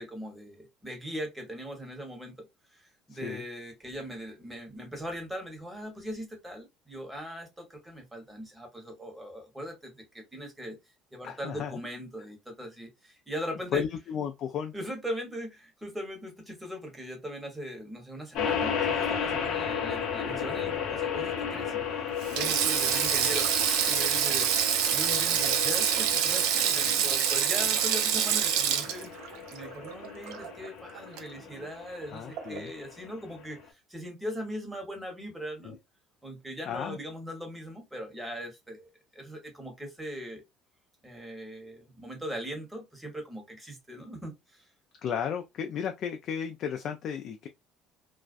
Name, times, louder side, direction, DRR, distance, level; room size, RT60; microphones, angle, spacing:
voice 1, 0.0-10.8 11.1-13.8 14.7-21.7 22.3-24.5 24.9-29.1 29.5-35.8 36.2-38.9 39.1-40.4 41.0-44.7, equal, 10° right, 1.1 m, -40 dB
voice 2, 3.1-3.4 11.2-11.7 13.7-14.7 32.1-32.7 35.6-35.8 36.7-37.0 45.0-47.5, left 8 dB, 55° left, 0.3 m, -33 dB
sound 1, 18.3-33.6, left 7 dB, 70° left, 0.8 m, -34 dB
Sink (filling or washing), 22.2-30.7 31.0-31.2 32.4-32.6, right 9 dB, 80° right, 0.4 m, -26 dB
2.4 x 2.1 x 2.4 m
supercardioid pair, 100°, 0 cm